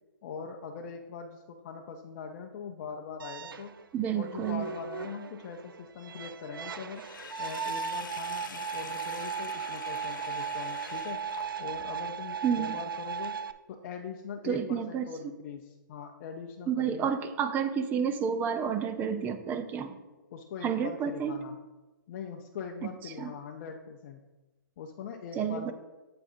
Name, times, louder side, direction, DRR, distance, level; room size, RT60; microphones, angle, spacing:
voice 1, 0.2-3.7 4.1-7.0 7.4-11.2 11.6-13.4 13.7-17.1 20.3-21.6 22.1-24.2 24.8-25.7, left 6 dB, 40° left, 2 dB, 0.6 m, -41 dB
sound 1, 3.2-13.5, right 6 dB, 80° right, 0.5 m, -37 dB
voice 2, 3.9-4.6 12.4-12.7 14.4-15.1 16.7-19.9 20.6-21.3 23.2-23.3 25.4-25.7, right 7 dB, 15° right, 10 dB, 0.5 m, -30 dB
Sink (filling or washing), 6.9-11.9, left 6 dB, 70° left, 1.0 m, -45 dB
8.5 x 7.8 x 2.7 m, 1.1 s
hypercardioid pair, 140°, 11 cm